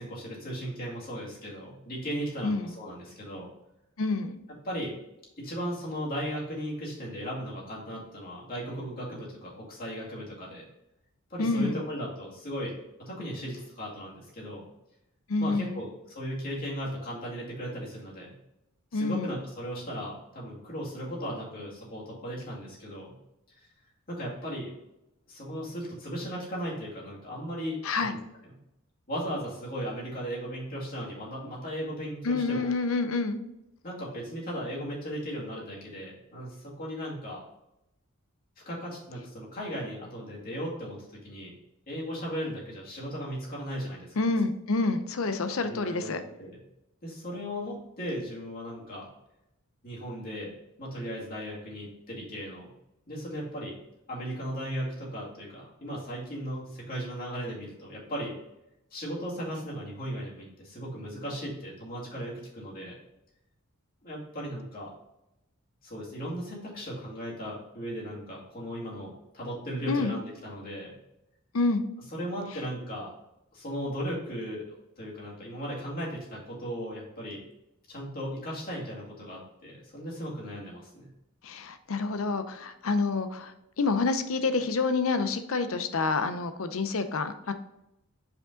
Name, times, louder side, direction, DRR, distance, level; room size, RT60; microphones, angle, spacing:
voice 1, 0.0-3.5 4.6-4.9 5.4-10.7 11.3-12.7 13.0-14.7 15.4-18.3 18.9-23.2 24.1-24.7 25.3-28.2 28.5-28.6 29.1-32.7 33.8-37.4 38.7-41.0 41.2-41.5 41.9-44.1 45.6-46.6 47.0-49.1 49.8-50.5 50.8-52.7 53.1-53.8 54.1-58.3 58.9-63.0 64.0-64.9 65.8-70.9 72.1-73.1 73.5-77.4 77.9-81.1, equal, 40° left, -5 dB, 2.2 m, -37 dB
voice 2, 2.4-2.7 4.0-4.4 11.4-11.8 15.3-15.8 18.9-19.3 27.8-28.1 32.2-33.4 44.2-46.2 69.9-70.2 71.5-71.8 81.4-83.5 83.8-87.5, left 3 dB, 65° left, 9 dB, 0.6 m, -28 dB
5.2 x 4.9 x 3.8 m, 0.87 s
head